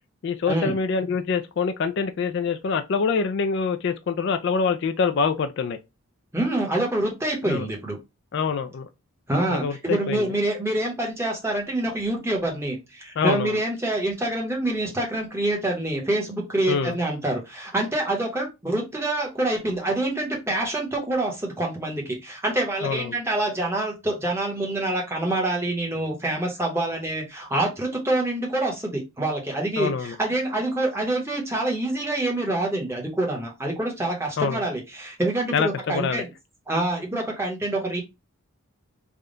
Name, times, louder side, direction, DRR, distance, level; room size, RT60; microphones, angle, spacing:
voice 1, 0.2-5.8 7.4-7.7 8.3-8.9 9.5-10.3 13.2-13.6 16.7-17.0 22.8-23.2 29.8-30.2 34.4-34.6 35.5-36.2, left 5 dB, 55° left, 0.3 m, -25 dB
voice 2, 6.3-8.0 9.3-36.3 36.7-38.0, right 1 dB, 10° right, 0.9 m, -26 dB
3.5 x 2.2 x 3.8 m
head